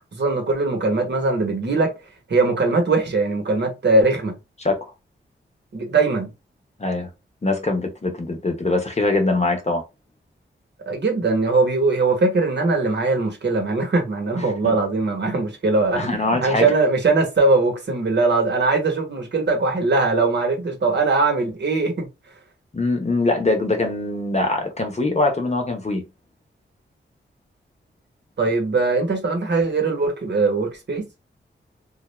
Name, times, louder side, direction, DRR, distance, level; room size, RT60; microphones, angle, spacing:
voice 1, 0.1-1.9 2.3-4.4 5.7-6.3 10.9-22.1 28.4-31.1, right 3 dB, 60° right, 0.9 m, -21 dB
voice 2, 7.4-9.8 14.6-14.7 15.9-16.7 22.7-26.0, left 2 dB, 35° left, 0.9 m, -22 dB
2.3 x 2.0 x 3.1 m
cardioid pair, 55°, 20 cm